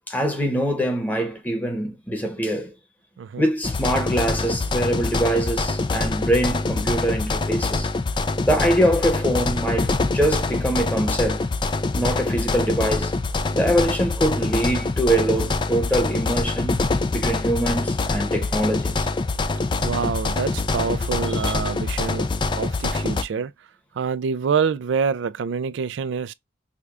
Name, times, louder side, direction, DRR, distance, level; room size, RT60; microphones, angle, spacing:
voice 1, 0.1-2.7 3.4-7.9 8.4-11.4 11.9-13.1 13.5-16.8 17.1-19.1, right 1 dB, 10° left, 1.0 m, -23 dB
sound 1, 3.6-23.2, left 3 dB, 25° left, 0.3 m, -25 dB
voice 2, 19.8-23.5 23.9-26.3, right 6 dB, 65° right, 0.3 m, -26 dB
4.9 x 2.3 x 2.3 m
head